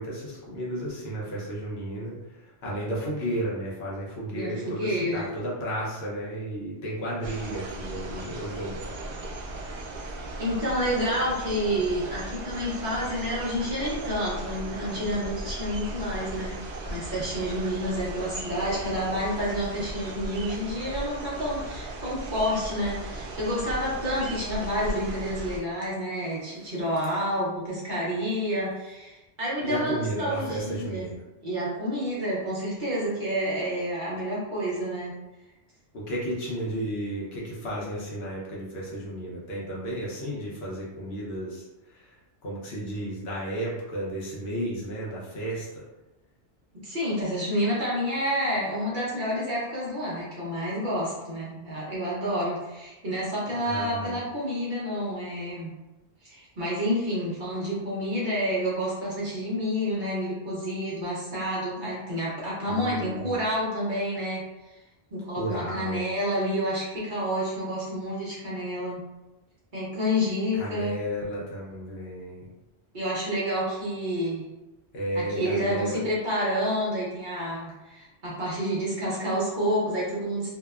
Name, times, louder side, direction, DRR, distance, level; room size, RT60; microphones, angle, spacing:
voice 1, 0.0-9.0 29.6-31.1 35.9-41.6 41.9-42.1 42.4-45.8 53.6-54.2 62.7-63.4 65.4-66.0 70.5-72.5 74.9-76.0, right 1 dB, 65° left, -5 dB, 0.9 m, -33 dB
voice 2, 4.3-5.3 10.2-16.6 16.9-31.1 31.4-35.1 46.8-55.7 56.2-64.4 64.7-64.8 65.1-69.0 69.7-70.9 72.9-74.4 75.1-80.5, equal, 50° right, -7 dB, 0.8 m, -29 dB
sound 1, 7.2-25.6, right 2 dB, 85° right, 0.9 m, -37 dB
2.7 x 2.1 x 2.3 m, 1.0 s
omnidirectional pair, 1.2 m